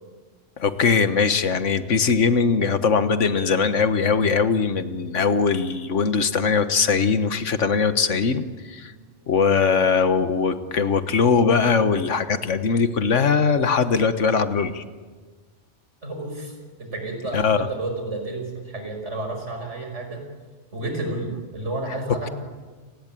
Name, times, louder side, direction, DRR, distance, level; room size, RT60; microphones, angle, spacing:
voice 1, 0.6-8.9 9.3-14.8 17.3-17.7, left 5 dB, 85° left, 11 dB, 1.7 m, -21 dB
voice 2, 16.0-20.2 20.7-22.3, right 2 dB, 75° right, 4 dB, 5.8 m, -31 dB
30.0 x 19.5 x 9.2 m, 1.4 s
omnidirectional pair, 1.2 m